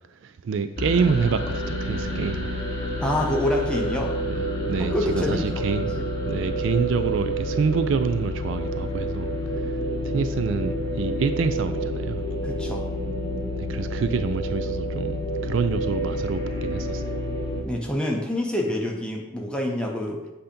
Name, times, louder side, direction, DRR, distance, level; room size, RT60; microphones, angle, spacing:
voice 1, 0.0-2.5 4.3-9.8 10.0-12.2 13.6-17.0, right 5 dB, 60° right, 0.3 m, -27 dB
sound 1, 0.8-17.6, equal, 20° left, 1.0 m, -29 dB
voice 2, 3.0-4.1 4.8-5.7 12.4-12.8 17.7-20.2, left 1 dB, 5° left, 0.7 m, -26 dB
7.8 x 2.8 x 5.1 m
head